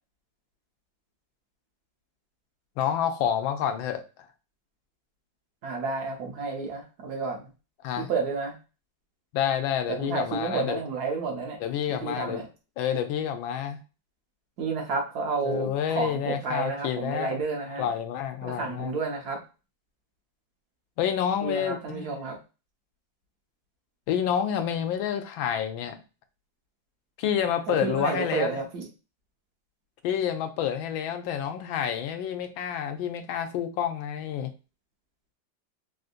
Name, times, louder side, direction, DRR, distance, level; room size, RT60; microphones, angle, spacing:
voice 1, 2.8-4.0 7.8-8.1 9.3-10.8 11.6-12.4 12.8-13.8 15.4-17.4 17.8-18.9 21.0-22.1 24.1-26.0 27.2-28.6 30.0-34.5, left 9 dB, 85° left, 1.3 m, -28 dB
voice 2, 5.6-7.5 8.0-8.6 9.9-11.6 11.9-12.5 14.6-17.9 18.4-19.4 21.4-22.4 27.7-28.9, right 4 dB, 65° right, 1.1 m, -31 dB
3.6 x 2.5 x 2.4 m
omnidirectional pair, 2.1 m